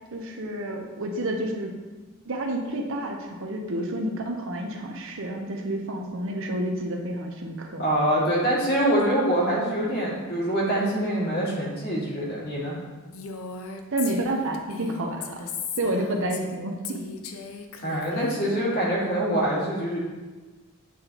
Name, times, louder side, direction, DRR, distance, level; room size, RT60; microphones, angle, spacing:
voice 1, 0.1-1.7 2.3-7.9 13.9-15.5 15.8-17.0, right 1 dB, 60° right, 2 dB, 0.7 m, -29 dB
voice 2, 7.8-12.8 17.8-20.0, right 1 dB, 45° left, -6 dB, 1.8 m, -25 dB
Female speech woman speaking, 13.1-16.5 16.8-18.6, left 5 dB, 65° left, 0.5 m, -37 dB
8.5 x 3.9 x 2.8 m, 1.3 s
head